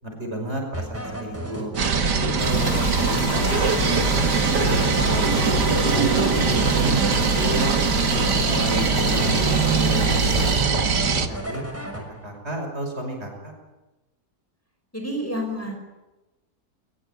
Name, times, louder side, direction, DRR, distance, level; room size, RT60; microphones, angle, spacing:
voice 1, 0.0-3.4 4.0-7.7 8.2-9.4 9.6-11.6 12.2-13.5, right 1 dB, 40° right, 3 dB, 6.2 m, -32 dB
sound 1, 0.7-7.6 7.9-10.0 10.3-12.4, equal, 10° right, 6.3 m, -33 dB
sound 2, 1.8-11.3, right 6 dB, 85° right, 2.2 m, -22 dB
sound 3, 2.4-10.7, left 3 dB, 65° left, 2.6 m, -28 dB
voice 2, 2.4-3.0 14.9-15.9, equal, 10° left, 3 dB, 5.4 m, -31 dB
23.0 x 22.0 x 9.2 m, 1.0 s
omnidirectional pair, 1.7 m